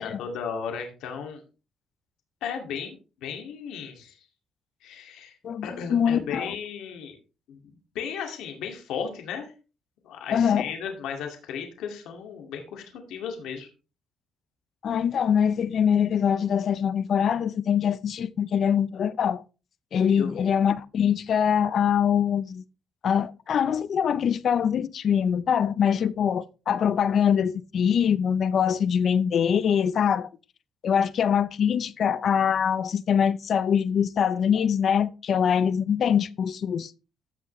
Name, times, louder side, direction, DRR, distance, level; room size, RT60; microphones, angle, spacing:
voice 1, 0.0-1.4 2.4-4.2 4.8-5.3 5.6-7.2 7.5-7.6 7.9-9.5 10.0-13.7 20.2-20.4, left 7 dB, 85° left, 2.3 m, -35 dB
voice 2, 5.4-6.6 10.3-10.7 14.8-19.4 19.9-22.6 23.0-30.3 30.8-36.9, left 8 dB, 55° left, 0.6 m, -23 dB
15.0 x 6.1 x 3.2 m
cardioid pair, 100°, 0 cm